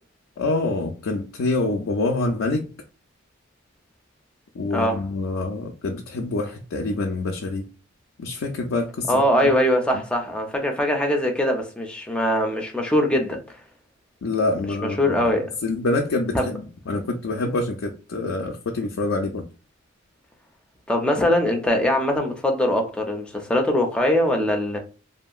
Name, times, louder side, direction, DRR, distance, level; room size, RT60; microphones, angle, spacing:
voice 1, 0.4-2.7 4.5-7.7 8.2-9.5 14.2-15.2 15.6-19.4, left 2 dB, 85° left, 0.4 m, -26 dB
voice 2, 4.7-5.1 9.1-13.4 14.8-15.5 16.3-16.5 20.9-24.8, left 1 dB, 5° left, 0.5 m, -22 dB
2.7 x 2.5 x 2.3 m
head